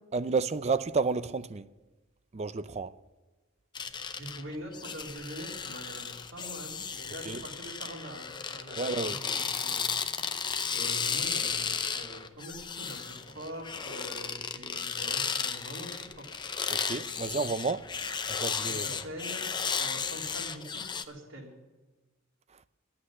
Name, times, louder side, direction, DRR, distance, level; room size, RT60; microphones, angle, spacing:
voice 1, 0.1-1.7 2.3-3.0 7.3-7.4 8.8-9.2 16.7-19.0, right 4 dB, 35° right, 0.5 m, -31 dB
sound 1, 3.7-21.0, left 6 dB, 20° left, 0.6 m, -34 dB
voice 2, 4.2-9.9 10.7-16.2 18.7-19.4 19.8-21.6, equal, 75° right, 3.8 m, -44 dB
11.5 x 8.7 x 9.9 m
head